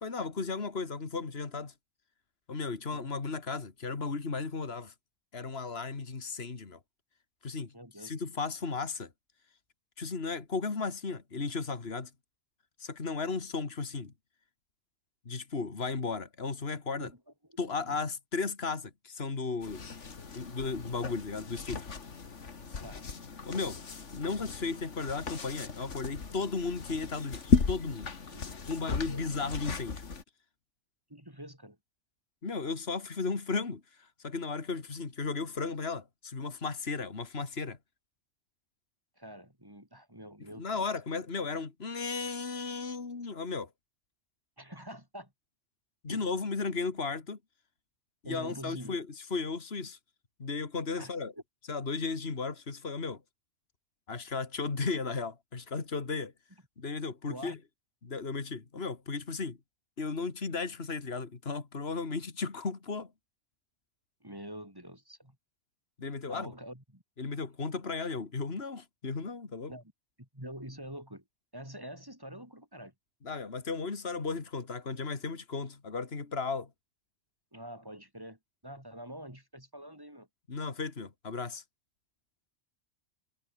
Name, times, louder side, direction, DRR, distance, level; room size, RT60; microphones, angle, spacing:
voice 1, 0.0-1.7 2.5-4.9 5.3-6.8 7.4-7.7 8.0-9.1 10.0-12.1 12.8-14.1 15.3-17.1 17.6-19.8 20.3-21.8 23.5-23.8 24.1-28.1 28.7-30.0 32.4-33.8 34.2-37.8 40.6-43.7 46.0-47.4 48.2-50.0 50.4-51.3 51.7-53.2 54.1-56.3 56.8-57.6 58.0-59.6 60.0-63.1 66.0-66.5 67.2-69.7 73.2-76.7 80.5-81.6, left 4 dB, 55° left, 2.5 m, -35 dB
voice 2, 7.7-8.1 17.0-17.2 17.8-18.0 22.7-23.1 28.3-28.5 28.9-29.3 31.1-31.8 39.2-40.9 44.6-45.3 46.1-46.3 48.2-49.0 51.0-51.1 57.3-57.6 64.2-65.4 66.3-67.0 69.7-69.9 70.2-71.2 71.5-72.9 77.5-80.3, equal, 20° right, 5.7 m, -46 dB
sound 1, 19.6-30.2, left 5 dB, 80° left, 2.3 m, -35 dB
omnidirectional pair, 1.2 m